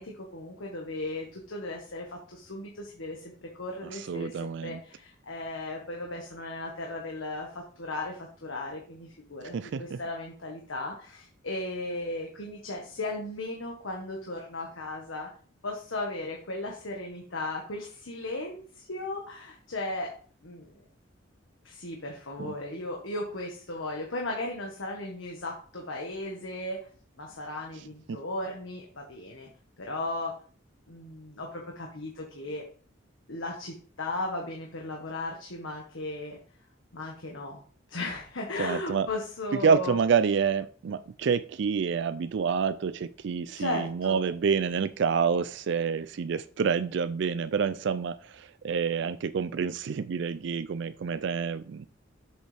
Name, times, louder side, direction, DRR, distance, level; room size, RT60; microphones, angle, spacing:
voice 1, 0.0-15.3 15.6-20.1 20.4-20.8 21.6-26.8 27.2-29.5 29.8-30.3 30.9-32.6 33.3-36.4 36.9-37.6 37.9-40.0 43.5-44.2, left 2 dB, 90° left, 0 dB, 1.5 m, -36 dB
voice 2, 3.9-4.8 9.5-10.0 28.1-28.2 38.6-39.1 39.6-51.9, right 6 dB, 65° right, 13 dB, 0.4 m, -28 dB
7.9 x 6.6 x 3.4 m, 0.43 s
head